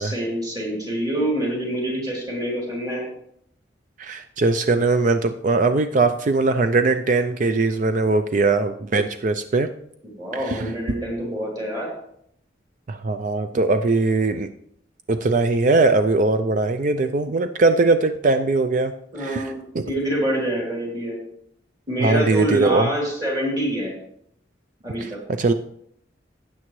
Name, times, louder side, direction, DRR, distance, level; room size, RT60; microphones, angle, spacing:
voice 1, 0.0-3.0 10.2-11.9 19.1-19.6 19.9-21.2 21.9-23.9 24.8-25.2, right 1 dB, 20° right, -3 dB, 3.1 m, -26 dB
voice 2, 4.0-9.7 10.4-10.7 12.9-14.5 15.1-18.9 19.2-19.9 22.0-22.9 25.0-25.1 25.4-25.5, right 3 dB, 45° right, 9 dB, 0.4 m, -20 dB
12.5 x 8.5 x 3.1 m, 0.71 s
head